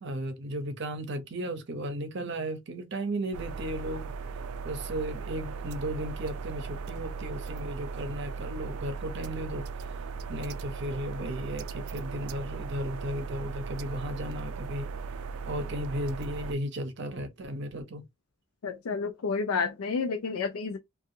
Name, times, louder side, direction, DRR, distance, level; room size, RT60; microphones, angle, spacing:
voice 1, 0.0-4.1 4.6-9.6 10.3-14.9 15.5-18.1, right 1 dB, 55° right, 0.7 m, -35 dB
sound 1, 3.3-16.5, right 5 dB, 85° right, 0.4 m, -37 dB
voice 2, 18.6-20.8, left 5 dB, 80° left, 0.4 m, -30 dB
2.7 x 2.3 x 2.6 m
head